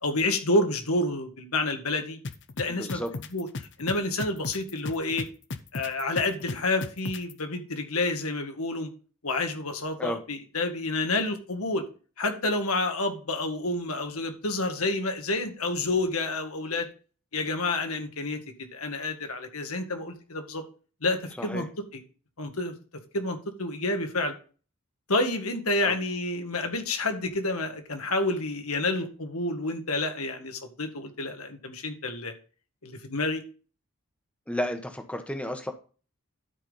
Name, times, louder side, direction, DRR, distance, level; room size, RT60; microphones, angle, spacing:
voice 1, 0.0-2.2 2.6-3.0 3.3-5.3 5.7-8.9 9.2-11.8 12.2-16.9 17.3-18.4 18.7-20.7 21.0-21.7 21.9-22.0 22.4-22.7 23.1-24.3 25.1-32.3 32.8-33.4, left 2 dB, 85° left, 6 dB, 1.9 m, -29 dB
sound 1, 2.2-7.3, left 3 dB, 55° left, 0.8 m, -35 dB
voice 2, 2.7-3.1 10.0-10.2 21.4-21.6 25.8-26.0 34.5-35.7, equal, 5° left, 6 dB, 1.1 m, -32 dB
12.0 x 5.3 x 4.0 m, 0.37 s
head